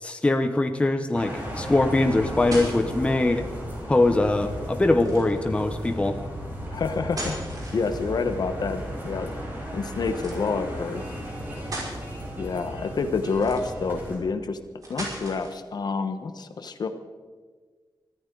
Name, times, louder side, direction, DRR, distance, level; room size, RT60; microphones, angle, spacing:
voice 1, 0.0-3.5 3.9-6.2, left 2 dB, 15° left, 6 dB, 0.8 m, -22 dB
sound 1, 1.1-14.2, equal, 25° right, 4.4 m, -35 dB
sound 2, 2.5-3.1 5.0-5.5 6.9-8.2 10.1-10.4 11.1-11.2 11.6-12.0 13.3-13.9 14.8-15.6, right 1 dB, 50° right, 5.4 m, -37 dB
voice 2, 6.7-7.4 7.7-9.3 9.7-11.0 12.4-14.6 14.9-16.9, left 4 dB, 60° left, 8 dB, 1.1 m, -28 dB
24.0 x 14.0 x 3.9 m, 1.5 s
wide cardioid pair, 175°, 8 cm